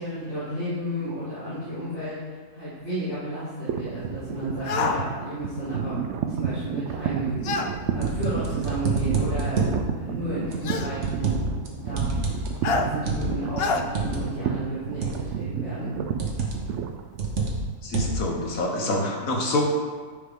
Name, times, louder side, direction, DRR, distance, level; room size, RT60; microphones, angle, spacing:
voice 1, 0.0-6.0 6.3-7.7 7.9-12.3 12.7-15.0 15.4-16.0, right 1 dB, 40° left, -14 dB, 2.7 m, -32 dB
sound 1, 3.7-17.7, right 8 dB, 70° right, 0.7 m, -31 dB
sound 2, 4.7-5.0 7.4-7.7 9.0-9.1 10.6-10.9 12.6-12.9 13.6-13.8, left 5 dB, 85° left, 0.5 m, -25 dB
sound 3, 7.7-9.8 10.5-11.7 11.9-14.2 15.0-15.4 16.2-16.7 17.2-18.3, right 3 dB, 50° right, 1.3 m, -28 dB
voice 2, 17.8-19.6, left 2 dB, 60° left, -1 dB, 1.5 m, -26 dB
9.8 x 5.0 x 3.6 m, 1.5 s
omnidirectional pair, 1.7 m